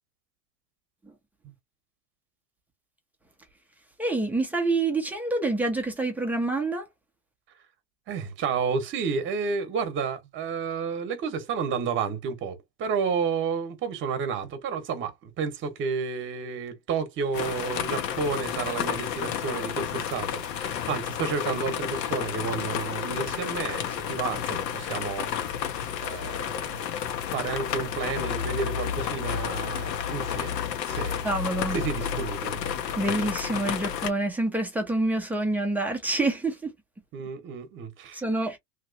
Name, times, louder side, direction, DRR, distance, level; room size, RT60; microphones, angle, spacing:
voice 1, 4.0-6.9 31.2-31.8 33.0-36.7 38.1-38.6, right 2 dB, 5° right, 0.4 m, -27 dB
voice 2, 8.1-25.6 26.0-26.9 27.3-31.4 31.7-32.6 37.1-38.2, right 5 dB, 25° right, 1.0 m, -31 dB
sound 1, 17.3-34.1, left 9 dB, 80° left, 0.9 m, -31 dB
3.0 x 2.9 x 2.6 m
supercardioid pair, 140°, 49 cm